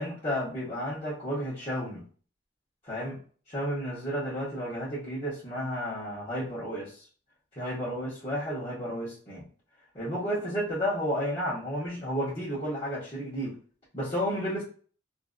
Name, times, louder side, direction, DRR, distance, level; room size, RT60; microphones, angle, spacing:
voice 1, 0.0-2.0 2.8-3.2 3.5-7.1 7.5-9.5 9.9-13.6 13.9-14.6, equal, 30° left, -9 dB, 1.0 m, -32 dB
2.6 x 2.6 x 2.5 m, 0.41 s
head